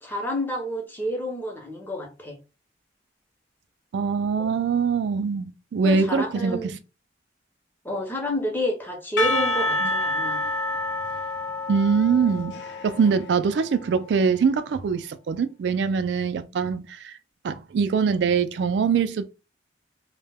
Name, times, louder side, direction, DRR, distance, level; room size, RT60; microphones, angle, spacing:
voice 1, 0.0-2.4 5.8-6.7 7.8-10.4, equal, 10° left, 0.6 m, -29 dB
voice 2, 3.9-6.7 9.8-9.9 11.7-17.1 17.4-19.2, right 5 dB, 70° right, 0.3 m, -23 dB
Percussion / Church bell, 9.2-14.2, left 1 dB, 75° left, 0.5 m, -28 dB
2.2 x 2.1 x 3.3 m
head